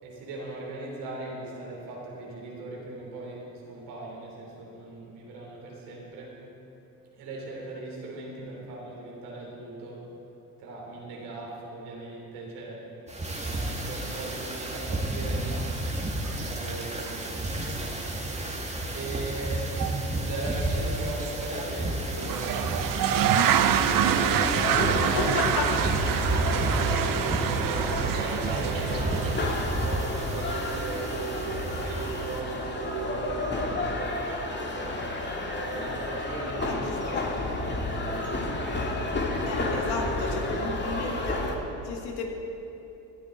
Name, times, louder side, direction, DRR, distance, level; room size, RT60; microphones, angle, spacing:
voice 1, 0.0-6.4 7.2-10.1 10.6-13.0 13.3-15.8 16.3-18.2 18.9-19.9 20.1-26.8 27.4-35.0 35.7-38.4 39.2-40.6, right 2 dB, 85° right, -3 dB, 3.4 m, -39 dB
sound 1, 13.1-32.4, right 1 dB, 15° right, 2.0 m, -32 dB
sound 2, 15.9-16.0 16.3-16.7 17.1-17.2 17.7-17.8 18.1-18.2 19.8-20.0 20.5-20.7 21.2-21.3 22.1-33.4, right 9 dB, 55° right, 0.7 m, -28 dB
sound 3, 23.8-41.6, left 2 dB, 25° left, 1.9 m, -31 dB
voice 2, 25.0-25.7 36.7-36.8 39.5-41.4 41.8-42.2, left 4 dB, 80° left, 1 dB, 2.0 m, -32 dB
17.5 x 12.0 x 3.9 m, 3.0 s
supercardioid pair, 75°, 39 cm